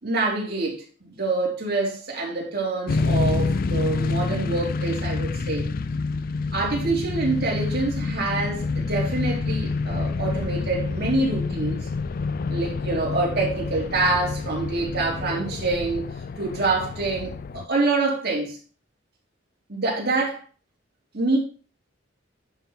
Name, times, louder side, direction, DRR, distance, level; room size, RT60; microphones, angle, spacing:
voice 1, 0.0-5.7 6.5-11.8 12.5-16.1 16.4-18.6 19.7-20.4 21.1-21.4, right 3 dB, 55° right, 3.2 m, -26 dB
sound 1, 2.9-17.7, left 3 dB, 45° left, 0.4 m, -27 dB
9.7 x 4.1 x 5.5 m
head